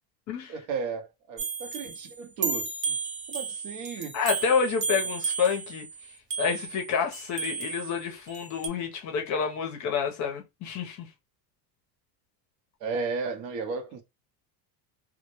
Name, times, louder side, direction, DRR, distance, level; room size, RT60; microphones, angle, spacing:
voice 1, 0.5-3.0 3.3-4.2 4.9-5.0 12.8-14.0, right 4 dB, 60° right, 0.7 m, -34 dB
sound 1, 1.4-8.7, right 5 dB, 25° right, 0.4 m, -33 dB
voice 2, 4.1-5.8 6.4-11.1, left 6 dB, 40° left, 0.5 m, -28 dB
2.1 x 2.0 x 2.8 m
supercardioid pair, 130°, 49 cm